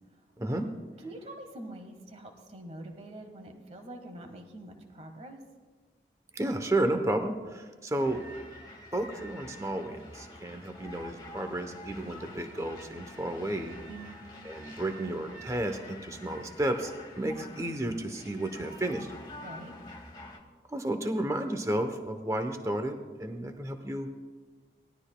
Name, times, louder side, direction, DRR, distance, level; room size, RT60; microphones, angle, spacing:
voice 1, 0.4-0.7 6.3-8.2 8.9-13.8 14.4-19.1 20.7-24.1, right 1 dB, 15° right, 7 dB, 0.8 m, -32 dB
voice 2, 1.0-5.4 13.9-14.2 19.4-19.7, right 1 dB, 35° right, 5 dB, 1.4 m, -45 dB
sound 1, 8.0-20.4, left 1 dB, 25° left, 1.5 m, -47 dB
19.0 x 12.0 x 2.3 m, 1.4 s
head